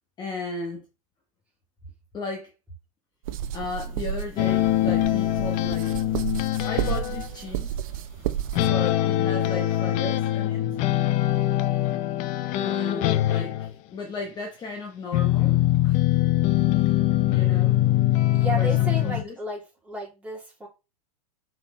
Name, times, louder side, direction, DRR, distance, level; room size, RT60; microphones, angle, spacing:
voice 1, 0.2-0.8 2.1-2.5 3.5-6.0 6.6-7.8 8.6-10.7 12.5-16.0 16.7-16.9 17.3-17.8 18.5-19.3, left 3 dB, 20° left, 1.2 m, -35 dB
sound 1, 3.2-8.7, right 10 dB, 65° right, 0.8 m, -32 dB
sound 2, 4.4-7.3 8.5-13.7 15.1-19.2, left 14 dB, 40° left, 0.7 m, -23 dB
voice 2, 12.6-13.1 18.3-20.7, right 2 dB, 5° right, 3.3 m, -34 dB
5.9 x 4.5 x 4.2 m
supercardioid pair, 135°, 19 cm